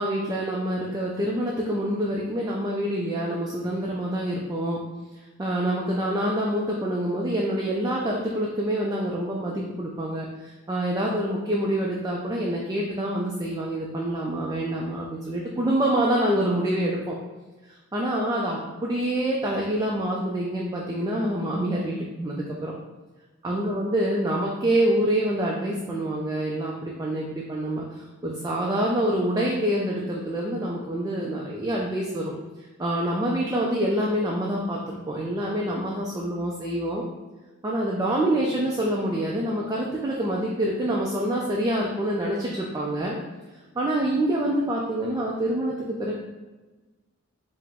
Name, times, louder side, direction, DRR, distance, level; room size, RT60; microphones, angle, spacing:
voice 1, 0.0-4.8 5.4-17.2 17.9-22.7 23.4-32.3 32.8-34.8 35.1-37.0 37.6-43.2 43.7-46.1, right 1 dB, 15° right, -3 dB, 0.3 m, -26 dB
4.7 x 2.1 x 3.5 m, 1.2 s
head